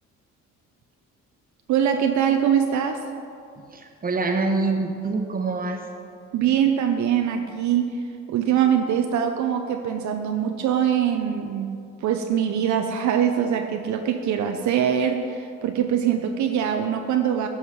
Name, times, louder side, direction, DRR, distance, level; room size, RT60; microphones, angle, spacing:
voice 1, 1.7-3.0 6.3-8.0 8.3-11.8 12.0-17.5, right 9 dB, 70° right, 5 dB, 0.6 m, -23 dB
voice 2, 3.6-5.8, right 3 dB, 30° right, 4 dB, 1.1 m, -25 dB
10.0 x 5.0 x 5.7 m, 2.4 s
cardioid pair, 90°, 30 cm